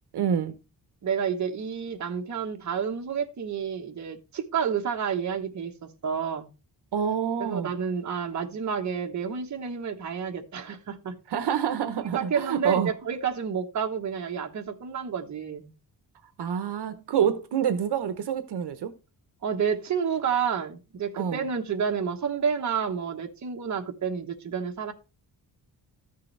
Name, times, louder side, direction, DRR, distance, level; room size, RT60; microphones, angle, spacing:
voice 1, 0.1-0.5 6.9-7.7 11.3-12.9 16.4-18.9 21.1-21.4, right 8 dB, 70° right, 0.9 m, -27 dB
voice 2, 1.0-6.5 7.4-11.2 12.1-15.7 19.4-24.9, right 7 dB, 45° right, 1.2 m, -30 dB
13.5 x 6.8 x 3.3 m
wide cardioid pair, 165°, 41 cm